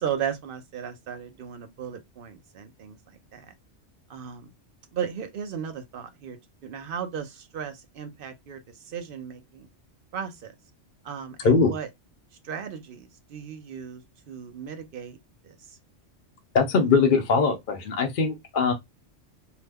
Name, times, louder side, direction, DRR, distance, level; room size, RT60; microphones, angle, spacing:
voice 1, 0.0-3.6 4.1-4.5 4.9-9.7 10.1-10.5 11.0-11.9 12.4-15.2 15.4-15.8, right 8 dB, 55° right, 0.8 m, -36 dB
voice 2, 16.5-18.7, left 4 dB, 55° left, 0.7 m, -21 dB
2.8 x 2.0 x 3.4 m
omnidirectional pair, 1.2 m